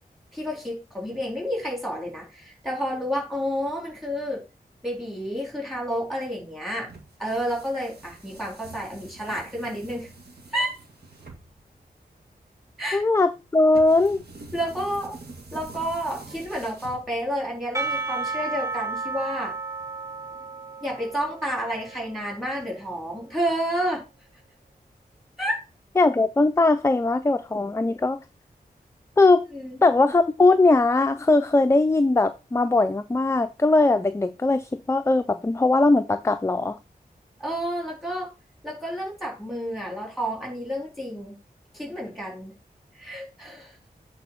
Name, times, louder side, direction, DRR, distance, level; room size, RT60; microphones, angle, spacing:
voice 1, 0.3-4.4 4.8-6.9 7.2-10.1 10.5-10.7 12.8-13.0 14.5-15.2 15.5-19.5 20.8-24.0 25.4-25.6 29.5-29.8 37.4-38.3 38.6-41.4 41.7-42.5 43.0-43.8, equal, ahead, 3.7 m, -30 dB
sound 1, 6.8-17.5, right 3 dB, 85° right, 1.8 m, -46 dB
voice 2, 12.9-14.2 26.0-28.2 29.2-29.5 29.8-36.8, left 2 dB, 15° left, 0.4 m, -20 dB
Percussion / Church bell, 17.7-23.0, right 3 dB, 20° right, 1.3 m, -33 dB
8.5 x 3.9 x 4.4 m
wide cardioid pair, 95°, 16 cm